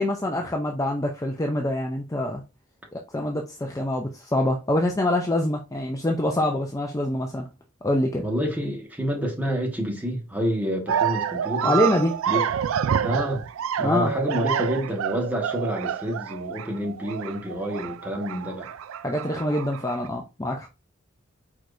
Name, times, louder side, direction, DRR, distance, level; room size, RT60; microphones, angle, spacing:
voice 1, 0.0-2.4 2.9-7.5 7.8-8.2 11.6-12.1 13.8-14.1 19.0-20.7, left 1 dB, 15° left, 0.5 m, -25 dB
voice 2, 8.2-11.8 12.3-12.5 13.0-13.4 13.8-18.7, equal, 10° right, 1.2 m, -28 dB
sound 1, 10.9-20.1, right 8 dB, 65° right, 0.3 m, -28 dB
4.7 x 4.5 x 2.6 m
head